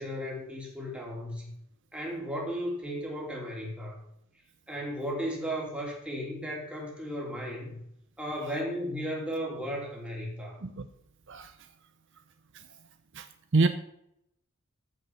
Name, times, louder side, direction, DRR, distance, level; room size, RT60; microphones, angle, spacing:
voice 1, 0.0-1.5 1.9-4.0 4.7-7.8 8.2-10.6, equal, 5° right, -2 dB, 3.1 m, -35 dB
voice 2, 10.6-10.9 11.3-11.5 13.1-13.3 13.5-13.7, right 3 dB, 60° right, 9 dB, 0.7 m, -25 dB
14.5 x 5.3 x 6.0 m, 0.77 s
head